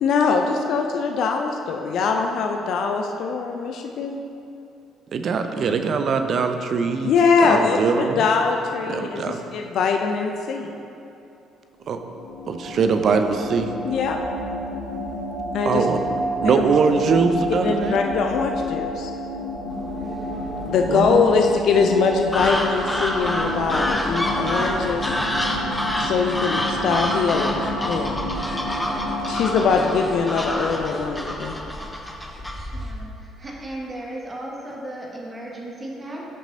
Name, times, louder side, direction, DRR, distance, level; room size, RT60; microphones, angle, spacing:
voice 1, 0.0-4.2 7.0-10.7 13.8-14.2 15.5-15.9 16.4-16.7 17.6-19.1 20.7-25.1 26.0-28.2 29.3-31.6, left 5 dB, 60° left, 3 dB, 0.5 m, -22 dB
voice 2, 5.1-7.1 7.4-8.2 8.9-9.4 11.9-12.0 12.5-13.7 15.6-16.0 16.4-18.0 20.9-21.3, right 5 dB, 50° right, 7 dB, 0.6 m, -22 dB
sound 1, 11.8-30.7, equal, 90° right, 1.6 m, -30 dB
sound 2, 19.7-31.3, right 1 dB, 10° right, 1.1 m, -39 dB
sound 3, 22.3-33.0, left 1 dB, 10° left, 1.3 m, -27 dB
voice 3, 32.7-36.3, right 1 dB, 30° right, -3 dB, 2.0 m, -35 dB
16.5 x 6.0 x 2.8 m, 2.8 s
figure-of-eight pair, 50°, 0 cm